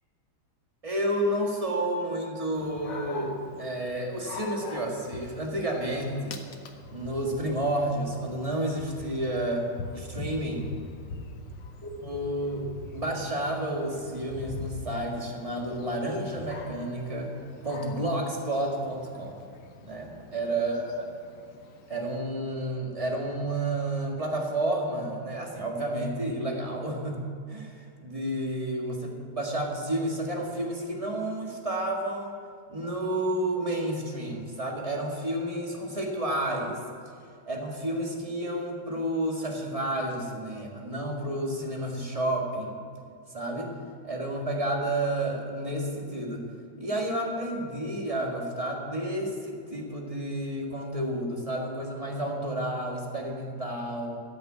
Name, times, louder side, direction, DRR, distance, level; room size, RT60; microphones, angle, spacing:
voice 1, 0.8-6.3 6.9-9.7 9.9-10.7 11.8-17.4 17.6-19.4 19.8-21.0 21.9-27.2 27.5-32.4 32.7-36.8 37.5-42.8 43.3-43.7 44.0-46.4 46.8-54.2, right 1 dB, 20° right, 0 dB, 1.7 m, -31 dB
Dog, 2.6-22.2, left 3 dB, 65° left, 1.6 m, -43 dB
13.5 x 6.9 x 8.9 m, 2.3 s
omnidirectional pair, 2.2 m